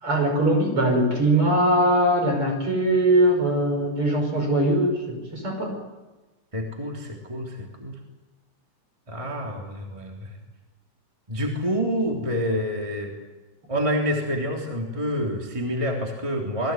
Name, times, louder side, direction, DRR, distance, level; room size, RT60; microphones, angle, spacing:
voice 1, 0.0-5.7, right 1 dB, 45° right, 4 dB, 6.5 m, -21 dB
voice 2, 6.5-8.0 9.1-10.3 11.3-13.1 13.7-16.7, equal, 10° right, 0 dB, 3.2 m, -27 dB
27.5 x 20.5 x 9.3 m, 1.2 s
omnidirectional pair, 3.5 m